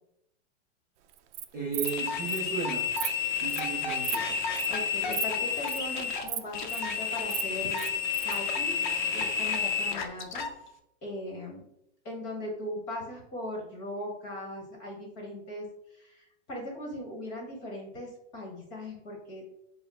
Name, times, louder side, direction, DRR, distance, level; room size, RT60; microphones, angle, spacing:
Insect, 1.1-1.4 1.7-2.0 2.3-2.4 2.7-3.1 3.5-3.7 4.0-4.2 4.5-4.7 5.1-5.2 5.5-5.8 6.3-6.8 7.1-8.4, right 12 dB, 80° right, 0.5 m, -34 dB
voice 1, 1.5-2.9 3.3-4.4, right 5 dB, 20° right, -5 dB, 0.3 m, -35 dB
sound 1, 1.8-10.5, left 6 dB, 45° left, 0.5 m, -31 dB
voice 2, 4.7-7.8 8.2-8.8 9.1-10.5 11.0-11.6 12.0-19.4, left 1 dB, 20° left, -1 dB, 1.2 m, -39 dB
4.9 x 2.0 x 4.1 m, 0.78 s
supercardioid pair, 175°, 35 cm